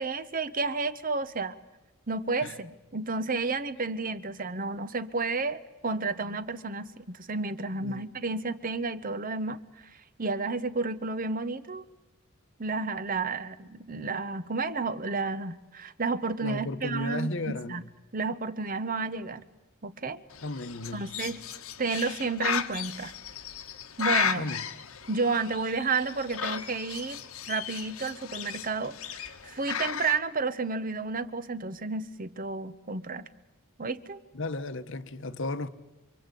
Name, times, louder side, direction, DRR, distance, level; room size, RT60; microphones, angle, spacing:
voice 1, 0.0-1.6 2.1-9.6 10.2-11.8 12.6-17.8 18.1-19.5 19.8-20.2 20.9-21.4 21.8-23.1 24.0-24.5 25.1-27.2 27.5-33.3 33.8-34.2, right 4 dB, 40° right, 1.0 m, -31 dB
voice 2, 16.4-17.9 20.4-21.2 24.4-24.6 34.3-35.7, left 2 dB, 60° left, 1.1 m, -34 dB
Bird, 20.3-30.2, left 7 dB, 75° left, 1.4 m, -35 dB
27.0 x 24.5 x 8.4 m
head